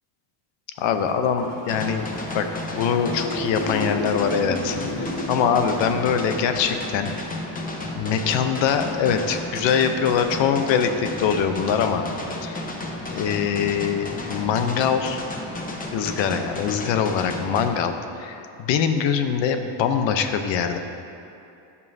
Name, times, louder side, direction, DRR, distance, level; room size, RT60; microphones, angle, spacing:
voice 1, 0.8-7.1 8.0-12.1 12.4-12.6 13.1-15.2 15.9-17.9 18.2-20.8, left 7 dB, 65° left, 7 dB, 0.8 m, -23 dB
sound 1, 0.8-6.0, left 1 dB, 45° left, 2.1 m, -33 dB
sound 2, 1.7-17.7, left 1 dB, 15° left, 0.9 m, -33 dB
15.5 x 5.6 x 2.7 m, 2.7 s
cardioid pair, 115°, 48 cm